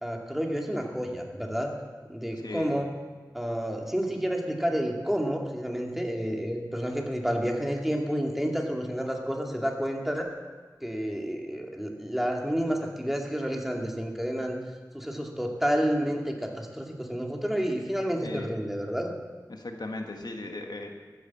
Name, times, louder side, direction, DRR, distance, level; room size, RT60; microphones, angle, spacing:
voice 1, 0.0-1.7 2.1-2.9 3.3-10.3 10.8-14.6 14.9-19.1, equal, 5° right, 1 dB, 2.3 m, -30 dB
voice 2, 19.5-21.0, left 2 dB, 90° left, 3 dB, 1.6 m, -37 dB
14.0 x 10.0 x 7.4 m, 1.5 s
wide cardioid pair, 50°, 7 cm